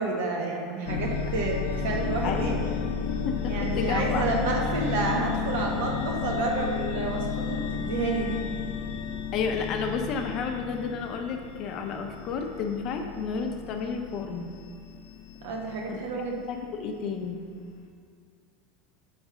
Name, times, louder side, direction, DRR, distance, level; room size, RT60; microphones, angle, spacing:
voice 1, 0.0-2.5 3.5-8.4 15.4-16.4, right 3 dB, 70° right, 0 dB, 1.0 m, -30 dB
sound 1, 0.9-16.9, left 6 dB, 85° left, 0.5 m, -32 dB
voice 2, 2.2-2.6 3.1-4.3 9.3-14.5 15.9-16.0 16.5-17.4, left 5 dB, 30° left, 4 dB, 0.4 m, -31 dB
6.1 x 3.2 x 4.9 m, 2.1 s
supercardioid pair, 180°, 0 cm